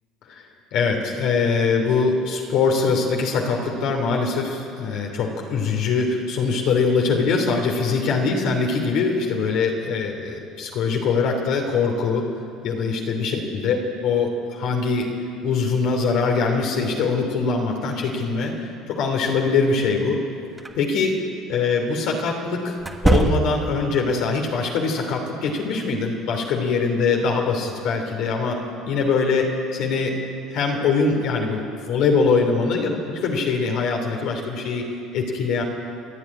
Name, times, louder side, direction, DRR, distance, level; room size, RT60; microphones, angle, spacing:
voice 1, 0.7-12.3 12.6-13.8 14.0-15.1 15.4-20.2 20.7-21.1 21.5-22.8 23.0-28.6 28.9-30.2 30.5-34.8 35.1-35.6, left 4 dB, 65° left, 1 dB, 3.1 m, -22 dB
sound 1, 20.6-20.8 22.8-23.8, right 3 dB, 10° right, 1.4 m, -21 dB
28.0 x 10.5 x 9.8 m, 2.6 s
cardioid pair, 140°, 0 cm